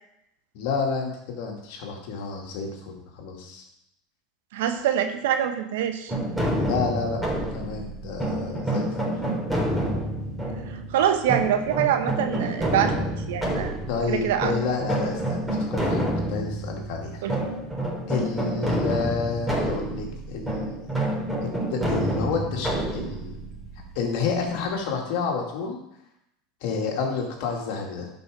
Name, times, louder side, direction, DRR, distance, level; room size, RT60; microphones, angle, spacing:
voice 1, 0.5-3.6 6.6-9.1 13.9-16.0 16.3-17.2 18.1-20.8 21.4-23.4 23.9-25.8 26.6-28.1, left 5 dB, 65° left, 1 dB, 2.3 m, -30 dB
voice 2, 4.5-6.1 10.7-13.7 14.1-14.5 17.2-17.4, right 9 dB, 70° right, 8 dB, 1.0 m, -25 dB
sound 1, 6.1-24.8, right 1 dB, 5° right, 3.7 m, -28 dB
11.0 x 5.5 x 5.0 m, 0.81 s
hypercardioid pair, 80°, 0 cm